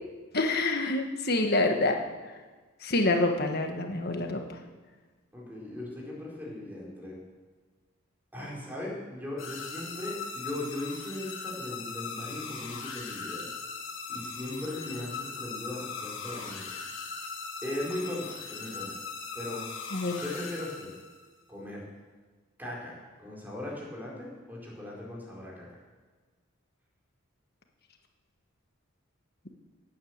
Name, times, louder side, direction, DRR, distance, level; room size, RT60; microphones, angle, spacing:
voice 1, 0.3-2.0 2.8-4.6 19.9-20.2, left 2 dB, 50° left, 4 dB, 1.5 m, -27 dB
voice 2, 5.3-7.2 8.3-13.5 14.1-16.7 17.6-19.0 19.3-19.6 20.2-20.9 21.5-21.8 22.6-25.7, left 1 dB, 10° right, -4 dB, 4.3 m, -38 dB
sound 1, 9.4-21.3, left 5 dB, 65° left, 2.4 m, -39 dB
17.5 x 9.1 x 7.9 m, 1.4 s
head